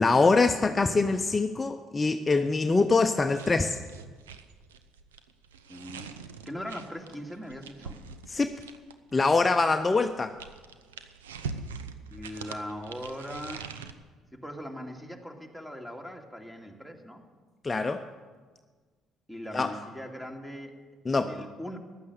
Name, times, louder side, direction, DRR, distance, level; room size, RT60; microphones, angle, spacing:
voice 1, 0.0-3.8 8.3-8.5 9.1-10.3 17.6-18.0 19.5-19.7 21.1-21.4, left 3 dB, 25° left, 7 dB, 0.8 m, -24 dB
sound 1, 3.3-9.1 9.9-13.9, right 5 dB, 85° right, 0.7 m, -43 dB
voice 2, 5.7-6.1 6.5-8.0 12.1-13.7 14.3-17.2 19.3-20.8 21.1-21.8, equal, 5° right, 3 dB, 2.5 m, -40 dB
15.0 x 11.0 x 6.8 m, 1.4 s
hypercardioid pair, 55°, 0 cm